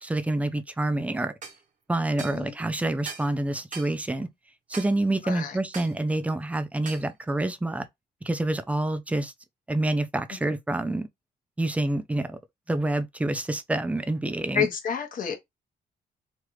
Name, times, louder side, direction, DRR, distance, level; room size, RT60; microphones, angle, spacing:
voice 1, 0.0-1.3 1.9-4.3 4.7-7.9 8.2-9.3 9.7-11.1 11.6-12.4 12.7-14.7, right 2 dB, 10° right, 0.4 m, -27 dB
sound 1, 1.4-1.6 2.2-2.4 3.1-3.3 3.7-3.9 4.7-4.9 5.7-6.0 6.9-7.1, right 5 dB, 50° right, 0.9 m, -39 dB
voice 2, 2.1-2.5 5.2-5.6 14.5-15.3, left 7 dB, 55° left, 1.1 m, -29 dB
3.2 x 2.4 x 3.1 m
cardioid pair, 120°, 16 cm